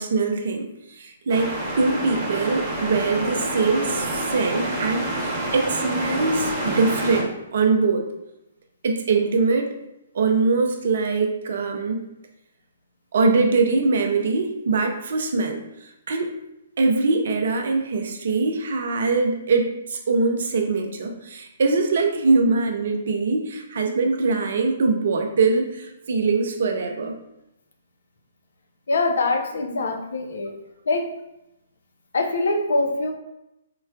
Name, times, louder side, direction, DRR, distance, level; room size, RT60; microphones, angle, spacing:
voice 1, 0.0-8.1 8.8-9.7 10.1-12.1 13.1-16.3 16.8-27.1, right 4 dB, 55° right, 4 dB, 0.4 m, -22 dB
sound 1, 1.3-7.2, right 1 dB, 25° right, 0.8 m, -28 dB
voice 2, 28.9-30.5 30.9-31.1 32.1-33.1, left 2 dB, 65° left, 3 dB, 0.4 m, -23 dB
3.8 x 2.1 x 2.3 m, 0.88 s
figure-of-eight pair, 125°, 0 cm